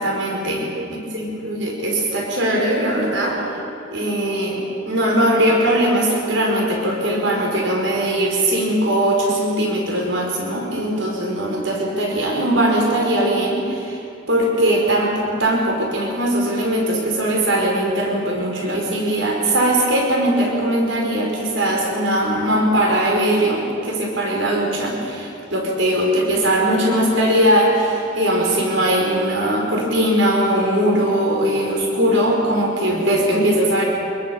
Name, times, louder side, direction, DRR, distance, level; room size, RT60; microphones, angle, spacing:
voice 1, 0.0-3.4 3.9-14.0 14.3-33.8, right 1 dB, 65° right, 0 dB, 5.1 m, -20 dB
25.5 x 22.0 x 7.3 m, 2.8 s
head